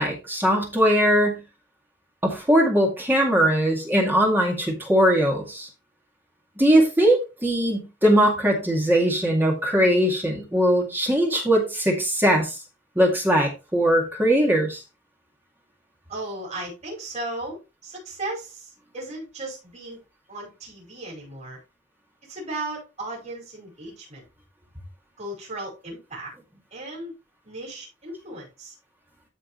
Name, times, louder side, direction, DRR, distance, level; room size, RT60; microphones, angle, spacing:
voice 1, 0.0-1.4 2.2-5.7 6.6-12.6 13.0-14.8, equal, 10° right, 2.0 m, -20 dB
voice 2, 16.1-20.0 20.3-21.6 22.3-24.2 25.2-26.3 26.7-27.1 27.4-28.7, right 2 dB, 35° right, 5.2 m, -36 dB
13.5 x 5.0 x 3.1 m
head